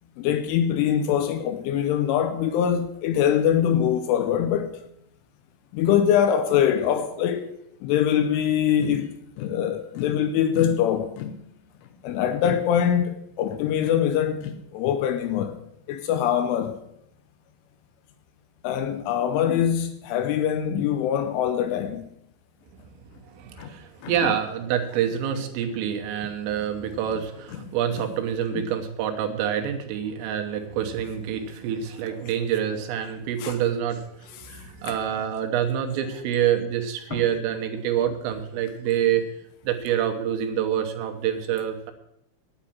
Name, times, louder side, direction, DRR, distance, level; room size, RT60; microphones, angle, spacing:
voice 1, 0.2-4.8 5.7-7.5 7.8-11.3 12.0-15.6 15.9-16.8 18.6-22.1 23.6-23.7 24.0-24.3 27.5-28.1 28.5-28.6 33.4-33.5 34.4-34.5 34.8-34.9 37.1-37.2, left 9 dB, 80° left, 3.2 m, -23 dB
voice 2, 23.1-39.3 39.6-41.9, right 9 dB, 85° right, 3.9 m, -27 dB
10.0 x 9.0 x 7.3 m
omnidirectional pair, 5.8 m